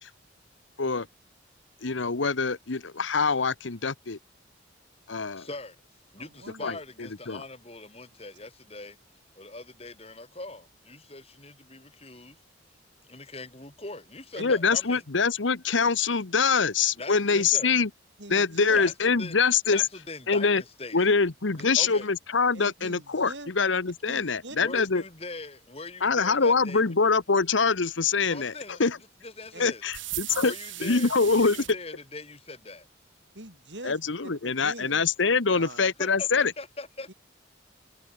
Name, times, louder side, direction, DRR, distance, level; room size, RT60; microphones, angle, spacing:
voice 1, 1.8-4.2 5.1-5.5 6.6-6.8 7.3-7.4 14.4-17.9 18.3-19.8 20.3-20.6 20.9-25.0 26.0-28.5 28.8-29.0 29.6-30.5 30.8-31.6 33.8-36.5, left 4 dB, 80° left, 1.1 m, -24 dB
voice 2, 5.4-5.8 6.1-9.0 9.4-12.4 13.1-15.0 17.0-17.7 18.7-19.3 19.7-21.0 21.6-22.1 24.6-27.1 28.2-28.8 29.2-29.8 30.4-32.9 36.0-37.1, left 2 dB, 30° left, 3.1 m, -41 dB
voice 3, 6.2-6.8 14.3-14.6 17.3-17.4 18.2-18.8 21.8-21.9 22.5-23.5 24.1-24.6 29.5-29.7 33.3-35.0 35.5-35.9 37.1-37.2, right 2 dB, 70° right, 7.5 m, -43 dB
sound 1, 29.9-31.8, right 15 dB, 85° right, 4.3 m, -37 dB
open air
head